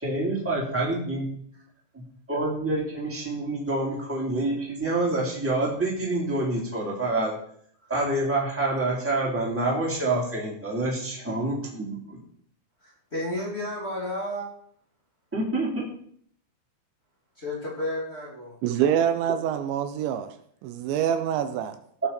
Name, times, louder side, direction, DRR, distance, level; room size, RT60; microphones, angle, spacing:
voice 1, 0.0-1.3 1.9-2.0 2.3-7.3 7.9-12.2 15.3-15.9, right 2 dB, 5° right, -4 dB, 2.6 m, -27 dB
voice 2, 12.8-14.5 17.4-18.5, left 1 dB, 20° left, -5 dB, 2.0 m, -32 dB
voice 3, 18.6-20.3 20.6-21.8, right 9 dB, 80° right, 9 dB, 2.9 m, -25 dB
17.5 x 7.3 x 4.3 m, 0.64 s
omnidirectional pair, 5.3 m